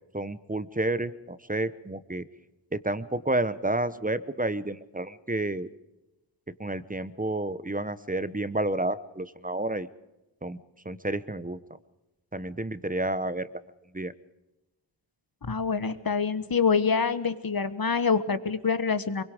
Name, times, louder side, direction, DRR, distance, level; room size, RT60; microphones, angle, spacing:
voice 1, 0.1-2.3 2.7-5.7 6.6-9.9 10.4-10.6 10.8-11.6 12.3-13.5 13.9-14.1, right 2 dB, 15° right, 14 dB, 1.0 m, -30 dB
voice 2, 15.4-19.2, left 5 dB, 45° left, 12 dB, 1.4 m, -26 dB
24.0 x 22.5 x 5.0 m, 1.0 s
cardioid pair, 50°, 48 cm